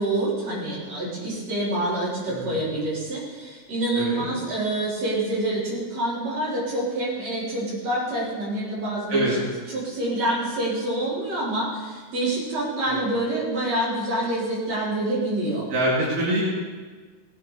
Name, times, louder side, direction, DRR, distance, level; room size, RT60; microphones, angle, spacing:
voice 1, 0.0-15.7, right 1 dB, 50° right, -8 dB, 5.2 m, -27 dB
voice 2, 2.3-2.6 3.9-4.3 9.1-9.3 12.8-13.0 15.7-16.4, right 1 dB, 80° right, -7 dB, 4.0 m, -25 dB
18.0 x 8.6 x 4.8 m, 1.5 s
omnidirectional pair, 3.9 m